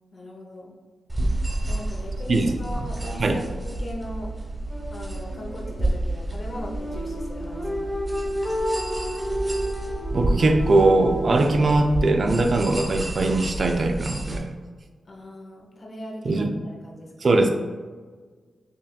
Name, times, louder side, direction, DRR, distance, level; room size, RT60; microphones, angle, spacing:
voice 1, 0.1-0.7 1.7-4.3 4.9-7.9 15.1-17.1, equal, 50° left, -1 dB, 1.0 m, -38 dB
sound 1, 1.1-14.4, right 1 dB, 30° right, 1.3 m, -30 dB
sound 2, 4.7-12.0, equal, ahead, 0.8 m, -32 dB
voice 2, 10.1-14.5 16.2-16.5 17.2-17.5, right 2 dB, 60° right, 4 dB, 0.4 m, -20 dB
5.3 x 2.7 x 2.4 m, 1.5 s
cardioid pair, 50°, 0 cm